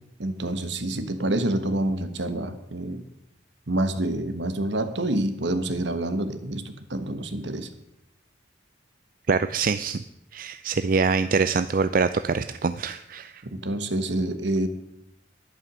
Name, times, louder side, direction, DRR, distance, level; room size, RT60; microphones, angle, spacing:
voice 1, 0.2-3.0 3.7-7.7 13.5-14.7, right 1 dB, 75° right, 10 dB, 1.4 m, -27 dB
voice 2, 9.3-10.0 10.3-13.4, right 4 dB, 50° right, 12 dB, 0.4 m, -24 dB
11.0 x 11.0 x 6.3 m, 0.81 s
head